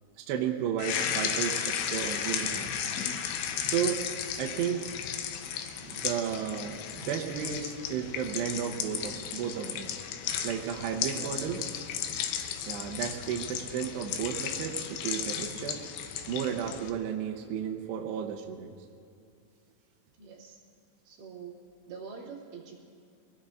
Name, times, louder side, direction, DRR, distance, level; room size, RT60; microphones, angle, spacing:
voice 1, 0.3-2.9 3.7-4.0 4.4-5.0 5.8-9.9 10.4-11.6 12.6-15.8 16.3-18.7, right 8 dB, 80° right, 1 dB, 2.5 m, -33 dB
sound 1, 0.8-16.9, left 8 dB, 75° left, 2.8 m, -34 dB
voice 2, 11.1-11.4 20.2-20.6 21.0-21.6 21.9-22.8, right 6 dB, 65° right, -5 dB, 4.6 m, -45 dB
25.5 x 18.5 x 2.6 m, 2.4 s
omnidirectional pair, 5.8 m